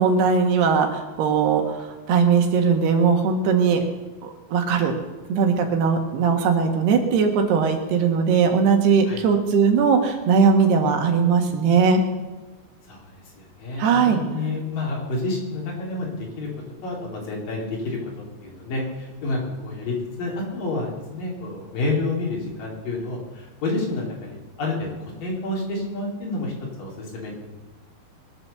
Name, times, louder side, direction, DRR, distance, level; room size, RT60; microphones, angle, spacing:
voice 1, 0.0-3.8 4.2-4.9 5.3-12.0 13.8-14.2, right 5 dB, 80° right, 4 dB, 3.6 m, -19 dB
voice 2, 12.9-16.1 16.4-16.5 16.8-18.0 18.4-24.9 25.2-26.5 26.8-27.3, left 2 dB, 55° left, -2 dB, 4.9 m, -29 dB
22.0 x 8.0 x 6.9 m, 1.2 s
omnidirectional pair, 4.7 m